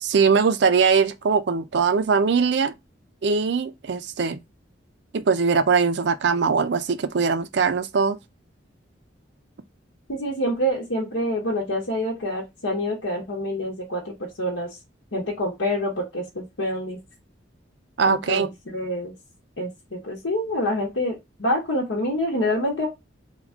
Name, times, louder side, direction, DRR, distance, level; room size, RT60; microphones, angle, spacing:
voice 1, 0.0-2.7 3.2-4.4 5.1-8.2 18.0-18.5, right 5 dB, 60° right, 0.4 m, -21 dB
voice 2, 10.1-14.7 15.1-17.0 18.1-19.1 19.6-22.9, left 1 dB, 80° left, 1.0 m, -27 dB
3.5 x 2.3 x 3.5 m
head